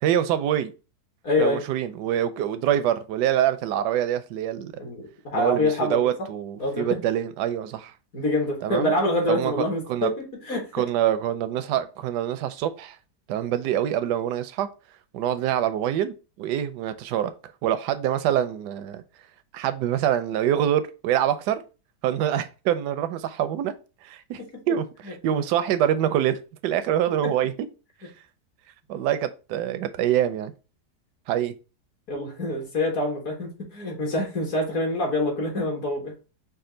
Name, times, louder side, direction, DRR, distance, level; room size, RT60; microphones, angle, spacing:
voice 1, 0.0-0.7 1.4-4.7 5.3-7.9 8.6-8.9 9.3-10.1 10.7-13.0 13.3-14.7 15.1-17.3 17.6-19.0 19.5-21.6 22.0-23.7 24.0-24.4 24.7-27.5 28.9-30.5 31.3-31.5, right 11 dB, 80° right, 1.2 m, -25 dB
voice 2, 1.2-1.6 4.8-6.1 6.6-7.0 8.1-10.1 10.4-10.7 25.0-25.1 32.1-36.1, left 1 dB, 55° left, 1.7 m, -26 dB
5.2 x 2.4 x 3.7 m
omnidirectional pair, 1.8 m